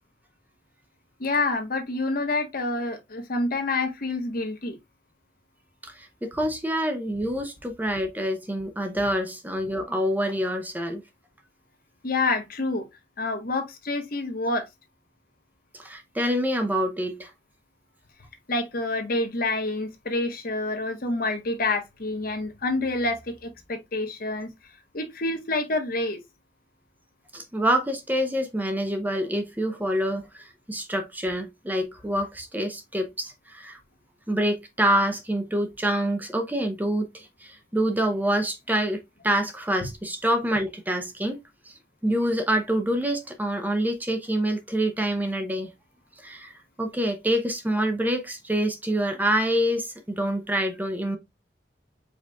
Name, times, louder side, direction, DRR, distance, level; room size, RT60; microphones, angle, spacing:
voice 1, 1.2-4.8 12.0-12.8 13.2-14.7 18.5-24.5 24.9-26.2, left 2 dB, 55° left, 1.1 m, -27 dB
voice 2, 5.8-11.0 15.7-17.3 27.3-33.8 34.3-41.4 41.7-41.8 42.0-45.7 46.2-46.5 46.8-51.2, right 1 dB, 10° right, 0.6 m, -26 dB
5.1 x 4.0 x 2.3 m
head